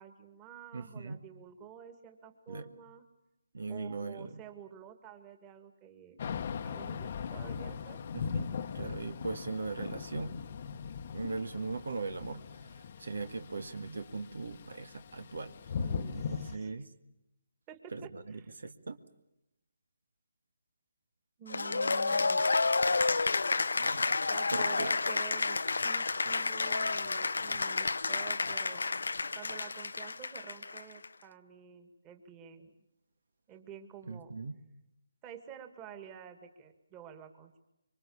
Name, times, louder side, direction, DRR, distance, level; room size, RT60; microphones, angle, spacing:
voice 1, 0.0-3.0 3.7-6.2 6.6-8.0 15.8-16.7 17.7-18.5 21.4-22.5 24.0-28.9 29.3-32.7 33.5-34.3 35.2-37.6, right 9 dB, 15° right, 6 dB, 2.1 m, -50 dB
voice 2, 0.7-1.2 2.5-2.7 3.5-4.4 8.1-8.4 8.7-10.3 11.1-15.5 16.1-16.9 17.9-19.0 23.8-24.2 24.5-24.9 34.0-34.6, right 3 dB, 75° right, 10 dB, 1.8 m, -39 dB
Thunder / Rain, 6.2-16.6, left 6 dB, 40° left, 1.0 m, -39 dB
Cheering / Applause, 21.5-31.1, left 3 dB, 80° left, 0.8 m, -30 dB
25.5 x 24.0 x 7.2 m, 0.89 s
hypercardioid pair, 160°, 0 cm